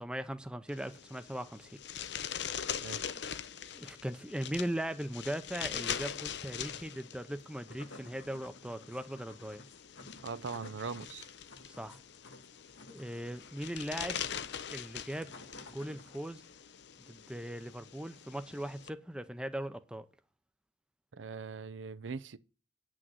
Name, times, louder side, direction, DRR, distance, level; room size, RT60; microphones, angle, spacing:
voice 1, 0.0-1.8 2.1-2.6 3.7-9.6 11.7-12.0 12.9-14.2 14.7-15.3 15.6-16.4 17.1-20.1, right 1 dB, 5° right, 0.6 m, -39 dB
sound 1, 0.7-18.9, left 9 dB, 60° left, 0.6 m, -43 dB
voice 2, 2.8-3.2 10.2-11.3 21.1-22.4, right 5 dB, 80° right, 0.6 m, -41 dB
sound 2, 7.4-16.5, left 2 dB, 80° left, 1.5 m, -54 dB
9.2 x 6.3 x 7.6 m
head